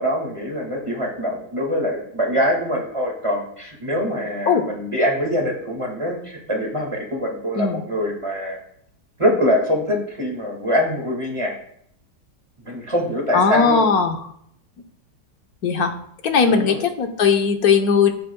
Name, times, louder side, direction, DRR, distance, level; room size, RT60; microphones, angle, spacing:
voice 1, 0.0-8.6 9.2-11.5 12.6-13.8 16.5-16.8, equal, 20° right, -1 dB, 1.9 m, -23 dB
voice 2, 13.3-14.2 15.6-16.0 16.2-18.1, left 5 dB, 65° left, 5 dB, 1.4 m, -18 dB
15.0 x 7.5 x 2.3 m, 0.70 s
omnidirectional pair, 1.7 m